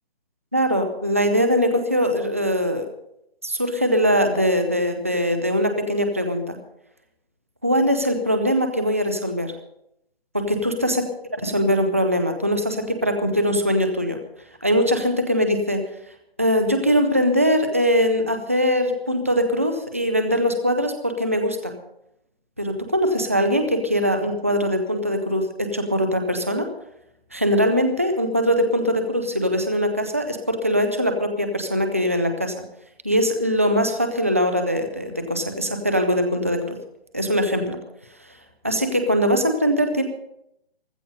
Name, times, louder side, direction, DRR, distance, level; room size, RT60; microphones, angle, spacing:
voice 1, 0.5-2.9 3.4-6.6 7.6-9.5 10.3-11.0 11.4-14.2 14.6-15.8 16.4-21.7 22.6-26.7 27.3-32.5 33.0-36.8 37.1-37.8 38.6-40.0, equal, 15° right, 6 dB, 0.5 m, -21 dB
15.5 x 13.0 x 5.3 m, 0.78 s
hypercardioid pair, 175°, 30 cm